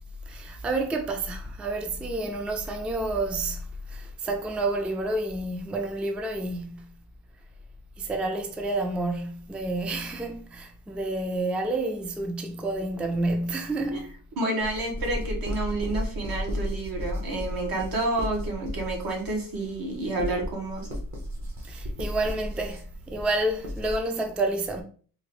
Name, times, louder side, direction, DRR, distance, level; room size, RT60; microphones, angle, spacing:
voice 1, 0.3-6.8 8.0-14.1 21.7-24.8, right 2 dB, 5° right, 0.3 m, -29 dB
voice 2, 14.4-20.9, right 2 dB, 70° right, 1.5 m, -29 dB
sound 1, 14.6-24.0, equal, 50° right, 1.2 m, -34 dB
3.9 x 2.6 x 3.1 m
cardioid pair, 130°, 36 cm